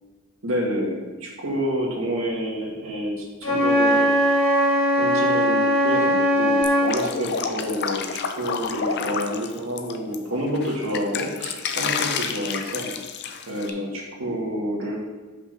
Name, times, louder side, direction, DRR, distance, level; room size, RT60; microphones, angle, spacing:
voice 1, 0.4-4.5 5.0-12.9 13.5-15.0, equal, 75° right, -2 dB, 1.8 m, -28 dB
Wind instrument woodwind instrument, 3.4-7.0, equal, 90° left, 1.5 m, -20 dB
Drip, 6.6-10.2 10.5-13.7, left 6 dB, 55° left, 0.5 m, -29 dB
5.7 x 5.0 x 6.0 m, 1.3 s
head